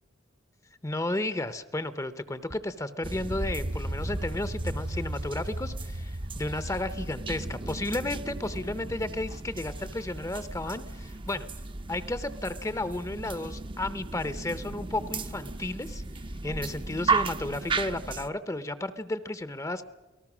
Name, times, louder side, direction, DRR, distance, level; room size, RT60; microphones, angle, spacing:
voice 1, 0.8-11.5 11.9-16.0 16.4-19.8, left 2 dB, 15° left, 14 dB, 0.7 m, -33 dB
sound 1, 2.2-9.9, right 1 dB, 45° right, 1.0 m, -52 dB
sound 2, 3.0-18.3, right 3 dB, 25° right, 0.6 m, -34 dB
28.5 x 18.5 x 6.1 m, 1.1 s
head